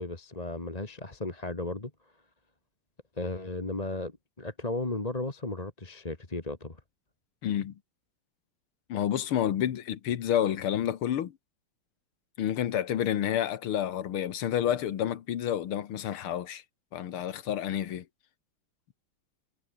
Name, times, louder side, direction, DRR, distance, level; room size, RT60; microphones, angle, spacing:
voice 1, 0.0-1.9 3.2-6.8, left 2 dB, 20° left, 2.0 m, -35 dB
voice 2, 7.4-7.8 8.9-11.4 12.4-16.6 16.9-18.1, left 10 dB, 80° left, 2.2 m, -29 dB
omnidirectional pair, 2.4 m